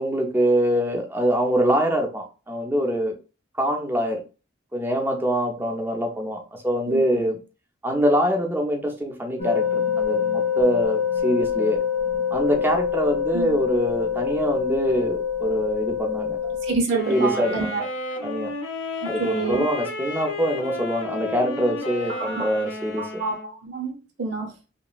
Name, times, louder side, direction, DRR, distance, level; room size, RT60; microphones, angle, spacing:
voice 1, 0.0-3.2 3.6-4.2 4.7-7.4 7.8-11.8 12.3-16.4 17.1-17.9 18.2-18.5 19.1-23.1, equal, 10° right, 2 dB, 0.4 m, -24 dB
voice 2, 6.9-7.2 13.3-13.6 16.6-17.8 19.0-19.6 22.2-22.5 23.0-24.5, right 4 dB, 65° right, 2 dB, 0.7 m, -28 dB
sound 1, 9.4-16.7, left 7 dB, 35° left, 0.6 m, -25 dB
sound 2, 16.9-23.5, left 3 dB, 80° left, 0.6 m, -33 dB
2.9 x 2.5 x 2.3 m, 0.32 s
head